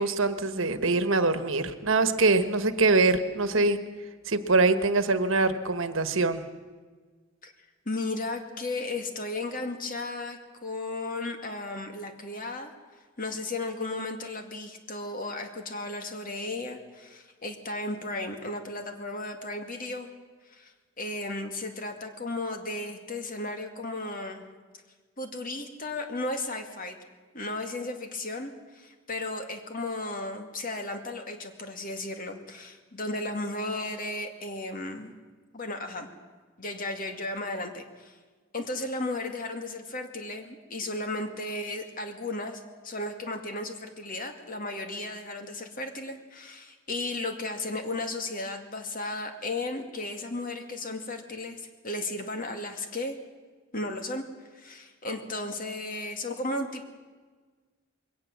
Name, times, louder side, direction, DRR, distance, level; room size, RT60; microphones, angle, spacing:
voice 1, 0.0-3.8 4.3-6.4, right 3 dB, 70° right, 10 dB, 1.4 m, -24 dB
voice 2, 7.9-12.7 13.2-20.1 20.5-20.7 21.0-24.4 25.2-27.0 27.3-35.1 35.5-36.1 36.6-38.2 38.5-53.2 53.7-54.2 54.5-56.9, left 2 dB, 40° left, 5 dB, 2.2 m, -35 dB
22.0 x 18.0 x 7.4 m, 1.4 s
head